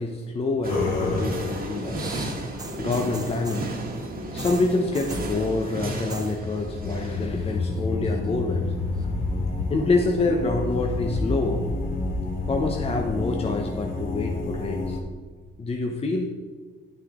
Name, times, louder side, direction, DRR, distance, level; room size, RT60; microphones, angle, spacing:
voice 1, 0.0-2.1 2.4-3.7 4.3-8.8 9.7-11.7 12.5-15.0 15.6-16.3, left 3 dB, 30° left, 2 dB, 0.8 m, -27 dB
sound 1, 0.6-7.3, right 1 dB, 50° right, 1.5 m, -33 dB
sound 2, 0.7-1.8 5.6-15.0, left 3 dB, 85° left, 1.3 m, -29 dB
sound 3, 1.8-3.7 4.4-5.3 5.9-6.4 6.6-7.1 7.5-8.3 9.0-9.1, right 3 dB, 20° right, 0.7 m, -40 dB
9.8 x 6.5 x 3.7 m, 1.5 s
cardioid pair, 90°, 20 cm